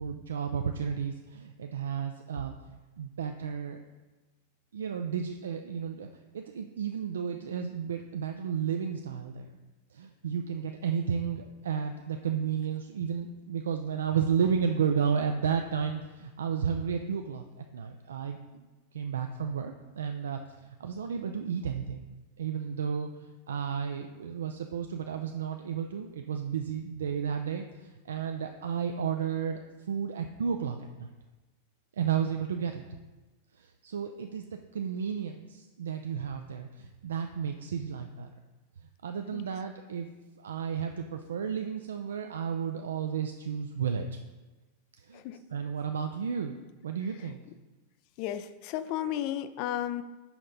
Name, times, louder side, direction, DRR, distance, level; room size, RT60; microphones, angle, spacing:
voice 1, 0.0-3.8 4.7-6.1 6.3-9.5 9.9-17.5 17.7-18.6 18.9-22.0 22.4-29.6 29.9-31.1 32.0-32.8 33.6-38.3 39.0-40.1 40.4-44.1 45.1-45.2 45.5-47.4, right 7 dB, 70° right, 6 dB, 0.3 m, -32 dB
voice 2, 48.2-50.0, left 11 dB, 45° left, 13 dB, 0.4 m, -33 dB
5.8 x 5.3 x 4.0 m, 1.2 s
figure-of-eight pair, 95°, 0 cm